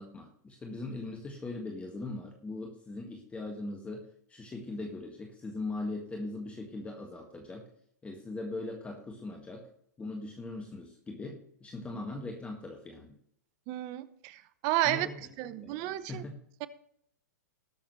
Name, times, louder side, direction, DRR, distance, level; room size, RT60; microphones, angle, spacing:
voice 1, 0.0-7.7 8.0-9.7 10.0-13.2 14.8-15.8 16.1-16.4, left 2 dB, 15° left, 2 dB, 1.8 m, -40 dB
voice 2, 13.7-15.1 15.4-16.2 16.6-16.7, right 15 dB, 40° right, 15 dB, 0.8 m, -32 dB
19.5 x 7.0 x 3.2 m, 0.71 s
figure-of-eight pair, 110°, 9 cm